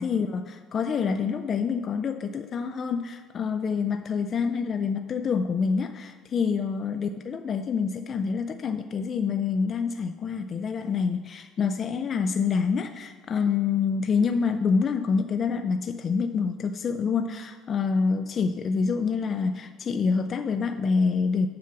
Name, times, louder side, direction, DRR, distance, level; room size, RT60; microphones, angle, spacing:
voice 1, 0.0-21.5, left 5 dB, 30° left, 8 dB, 0.3 m, -27 dB
7.6 x 6.9 x 5.9 m, 1.5 s
cardioid pair, 170°, 0 cm